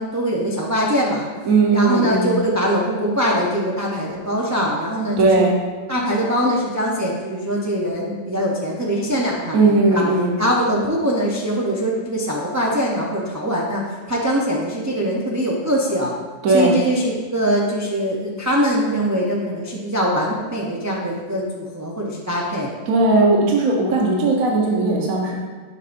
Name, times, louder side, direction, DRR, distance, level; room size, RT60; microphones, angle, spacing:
voice 1, 0.0-1.3 1.7-5.4 5.9-10.0 10.4-13.8 14.1-16.1 16.5-22.7, equal, 30° right, -3 dB, 0.3 m, -22 dB
voice 2, 1.5-2.3 5.2-5.5 9.5-10.4 16.4-16.8 22.9-25.3, right 3 dB, 75° right, -1 dB, 1.3 m, -17 dB
7.2 x 5.4 x 2.5 m, 1.4 s
omnidirectional pair, 1.5 m